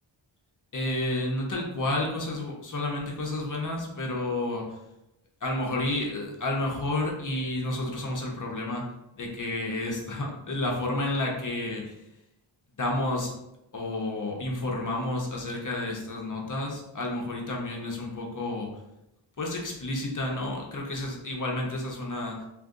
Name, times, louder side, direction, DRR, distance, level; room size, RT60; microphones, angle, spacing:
voice 1, 0.7-4.8 5.4-8.9 9.2-12.0 12.8-13.3 13.7-18.7 19.4-22.5, left 2 dB, 40° left, -1 dB, 0.7 m, -30 dB
2.6 x 2.5 x 3.6 m, 0.89 s
wide cardioid pair, 105°, 49 cm